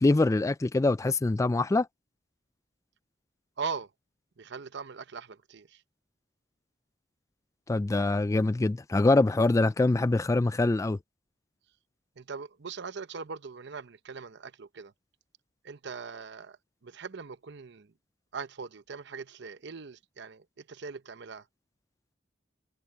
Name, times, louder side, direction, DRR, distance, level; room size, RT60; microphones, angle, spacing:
voice 1, 0.0-1.9 7.7-11.0, left 2 dB, 15° left, 0.3 m, -24 dB
voice 2, 3.6-3.9 4.4-5.8 12.2-14.9 15.6-16.6 16.8-17.9 18.3-21.5, right 5 dB, 65° right, 0.8 m, -40 dB
head